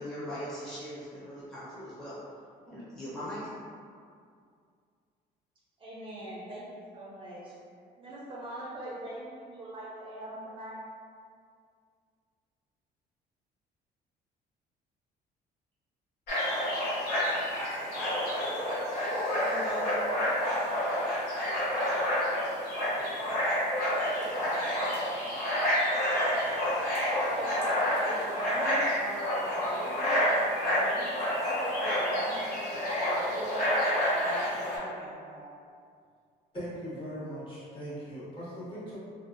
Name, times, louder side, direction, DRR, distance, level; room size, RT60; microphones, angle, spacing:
voice 1, 0.0-2.1 2.7-3.4, equal, 5° left, -12 dB, 0.7 m, -40 dB
voice 2, 5.8-7.5 8.0-10.8 19.3-20.7 27.1-33.6 34.1-35.6, right 1 dB, 30° right, -6 dB, 0.5 m, -42 dB
sound 1, 16.3-34.8, equal, 75° left, 1.0 m, -29 dB
voice 3, 36.5-39.0, equal, 30° left, -10 dB, 1.2 m, -39 dB
2.6 x 2.2 x 2.5 m, 2.2 s
cardioid pair, 110°, 17 cm